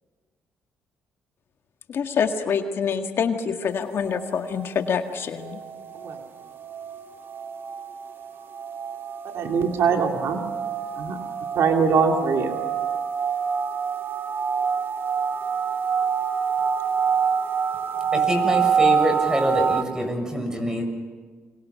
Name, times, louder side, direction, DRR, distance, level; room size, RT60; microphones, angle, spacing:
voice 1, 1.9-5.6, left 6 dB, 60° left, 6 dB, 1.9 m, -26 dB
sound 1, 3.6-19.8, right 6 dB, 55° right, 1.7 m, -27 dB
voice 2, 9.3-10.4 11.0-11.2 11.5-12.6, right 5 dB, 70° right, 3 dB, 2.6 m, -22 dB
voice 3, 18.1-20.8, equal, 15° right, 5 dB, 7.2 m, -25 dB
28.5 x 25.0 x 5.8 m, 1.5 s
cardioid pair, 75°, 5 cm